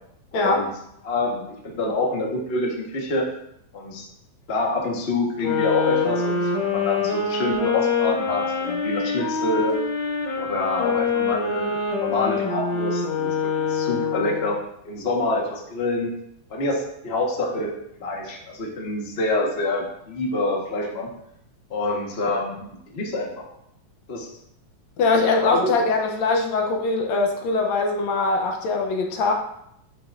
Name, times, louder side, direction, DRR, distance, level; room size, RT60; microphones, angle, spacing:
voice 1, 0.3-0.7 1.0-1.4 1.7-3.2 3.7-4.0 4.5-9.7 10.4-14.5 14.8-16.1 16.5-17.7 18.0-21.1 21.7-22.7 22.9-23.4 24.1-24.3 25.1-25.9, left 2 dB, 40° left, -2 dB, 0.9 m, -26 dB
sound 1, 5.4-14.6, left 5 dB, 55° left, 1.6 m, -25 dB
voice 2, 25.0-29.3, left 3 dB, 75° left, 2 dB, 2.0 m, -22 dB
11.5 x 5.1 x 2.6 m, 0.74 s
omnidirectional pair, 3.3 m